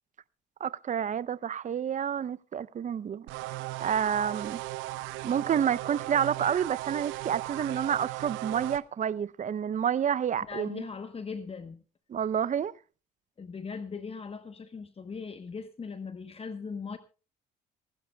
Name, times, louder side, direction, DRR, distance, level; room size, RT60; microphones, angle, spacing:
voice 1, 0.6-3.3 3.8-4.6 5.2-10.8 12.1-12.7, right 8 dB, 40° right, 0.7 m, -29 dB
sound 1, 3.3-8.8, right 18 dB, 75° right, 0.7 m, -37 dB
voice 2, 10.5-11.8 13.4-17.0, left 5 dB, 30° left, 1.1 m, -39 dB
27.0 x 12.0 x 2.3 m
supercardioid pair, 70°, 20 cm